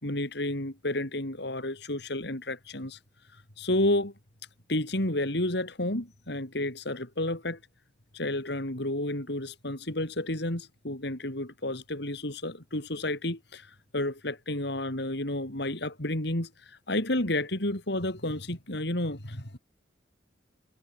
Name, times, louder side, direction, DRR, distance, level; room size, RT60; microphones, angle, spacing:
voice 1, 0.0-3.0 3.3-4.1 4.7-7.6 8.1-19.6, left 1 dB, 65° left, 4.7 m, -31 dB
head